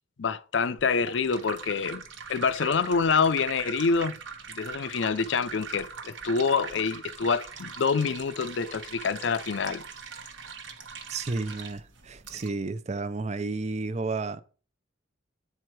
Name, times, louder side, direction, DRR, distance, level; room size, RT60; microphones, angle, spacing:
voice 1, 0.2-2.0 2.3-4.2 4.6-9.8, left 5 dB, 65° left, 0.5 m, -26 dB
sound 1, 0.8-12.5, right 6 dB, 70° right, 1.2 m, -42 dB
voice 2, 11.1-14.4, right 3 dB, 35° right, 0.5 m, -32 dB
8.5 x 4.6 x 4.6 m
head